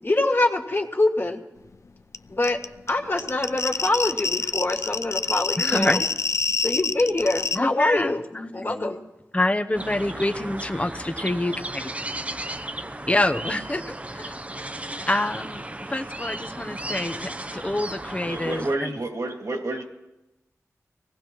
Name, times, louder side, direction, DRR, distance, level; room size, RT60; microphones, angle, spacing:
voice 1, 0.0-1.4 2.3-2.6 2.9-6.0 6.6-8.2 8.5-9.0, left 2 dB, 40° left, 2 dB, 2.0 m, -24 dB
sound 1, 2.1-2.2 2.4-7.6, left 4 dB, 60° left, 0.4 m, -26 dB
voice 2, 5.6-6.0 7.5-9.0 9.3-11.5 11.8-11.9 13.1-14.4 15.1-15.6 15.9-19.0, left 1 dB, 20° left, 7 dB, 0.9 m, -26 dB
sound 2, 9.7-18.8, right 1 dB, 25° right, 0.7 m, -35 dB
voice 3, 18.3-19.8, right 2 dB, 70° right, 2 dB, 2.4 m, -29 dB
24.0 x 17.5 x 3.1 m, 0.97 s
wide cardioid pair, 60°, 6 cm